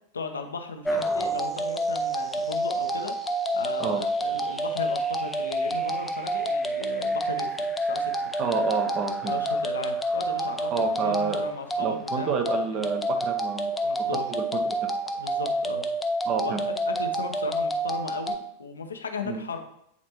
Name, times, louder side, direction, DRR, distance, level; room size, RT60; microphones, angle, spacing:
voice 1, 0.1-3.1 3.5-8.1 9.2-12.8 13.8-14.3 15.2-15.9 16.4-19.6, left 4 dB, 70° left, 6 dB, 0.7 m, -36 dB
sound 1, 0.8-18.4, right 1 dB, 5° left, 0.5 m, -28 dB
voice 2, 8.4-9.3 10.7-11.4 11.8-14.6 16.3-16.6 19.2-19.4, right 5 dB, 35° right, 5 dB, 0.9 m, -29 dB
8.3 x 4.2 x 3.0 m, 0.73 s
figure-of-eight pair, 90°, 0 cm